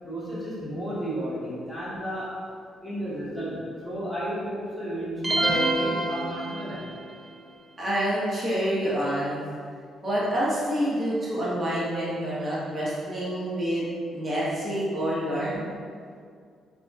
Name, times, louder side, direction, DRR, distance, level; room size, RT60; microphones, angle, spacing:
voice 1, 0.0-2.4 2.8-6.9, equal, 5° left, -10 dB, 1.2 m, -33 dB
sound 1, 5.2-7.1, right 1 dB, 15° right, 0.4 m, -26 dB
voice 2, 7.8-9.4 10.0-13.8 14.1-15.7, equal, 30° right, -8 dB, 1.0 m, -27 dB
2.8 x 2.7 x 2.2 m, 2.2 s
cardioid pair, 90°, 0 cm